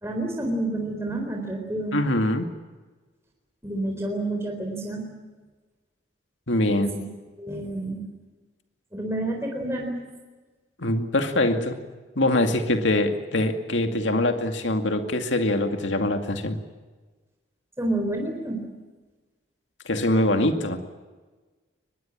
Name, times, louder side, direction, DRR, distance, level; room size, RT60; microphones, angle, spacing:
voice 1, 0.0-2.0 3.6-5.1 6.7-7.1 7.4-8.0 8.9-10.0 17.8-18.6, right 1 dB, 15° right, 1 dB, 4.0 m, -29 dB
voice 2, 1.9-2.5 6.5-6.9 10.8-11.8 12.2-16.6 19.9-20.8, left 1 dB, 75° left, 6 dB, 2.3 m, -23 dB
23.5 x 21.0 x 8.9 m, 1.3 s
head